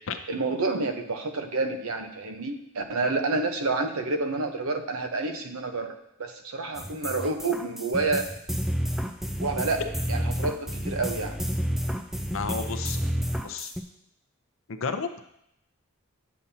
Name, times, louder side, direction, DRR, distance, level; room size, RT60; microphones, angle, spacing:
voice 1, 0.3-8.3 9.4-9.8 10.1-11.4, right 3 dB, 80° right, 5 dB, 0.8 m, -29 dB
sound 1, 6.7-13.8, equal, ahead, 0.3 m, -30 dB
voice 2, 12.3-13.0 13.4-13.7 14.7-15.1, left 5 dB, 65° left, 8 dB, 0.6 m, -31 dB
8.4 x 7.3 x 2.8 m, 0.78 s
head